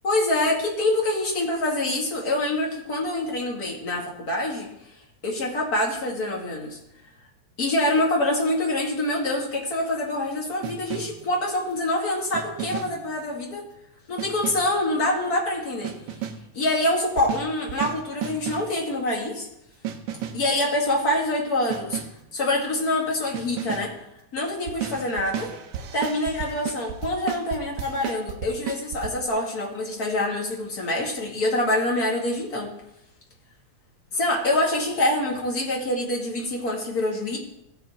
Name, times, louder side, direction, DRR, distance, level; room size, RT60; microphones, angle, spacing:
voice 1, 0.0-4.7 5.2-6.8 7.6-13.6 14.1-15.9 16.5-19.5 20.3-22.0 22.3-23.9 24.3-25.5 25.9-32.7 34.1-37.4, left 1 dB, 35° left, -2 dB, 2.2 m, -25 dB
sound 1, 10.6-11.3 12.3-13.1 14.2-14.8 15.8-16.6 17.2-18.8 19.8-20.5 21.7-22.3 23.3-24.0 24.7-29.1, right 9 dB, 70° right, 1.5 m, -33 dB
15.5 x 5.9 x 4.4 m, 0.82 s
omnidirectional pair, 3.5 m